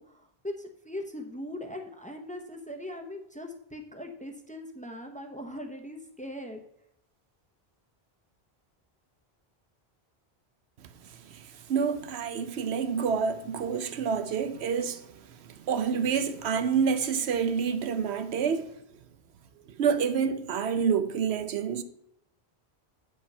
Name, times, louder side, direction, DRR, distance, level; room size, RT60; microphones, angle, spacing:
voice 1, 0.0-6.6, left 1 dB, 10° left, 0.9 m, -40 dB
voice 2, 11.7-15.0 15.7-18.7 19.8-21.8, right 6 dB, 85° right, 1.0 m, -27 dB
8.6 x 5.1 x 5.4 m
omnidirectional pair, 1.1 m